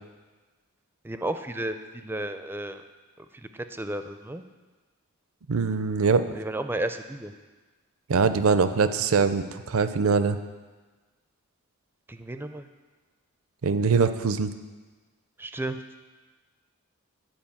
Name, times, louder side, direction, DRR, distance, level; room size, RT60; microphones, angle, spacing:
voice 1, 1.0-2.8 3.3-4.4 6.3-7.3 12.1-12.6 15.4-15.8, right 1 dB, 10° right, 9 dB, 0.4 m, -33 dB
voice 2, 5.5-6.2 8.1-10.4 13.6-14.5, right 5 dB, 70° right, 11 dB, 0.5 m, -22 dB
10.5 x 5.1 x 7.2 m, 1.3 s
head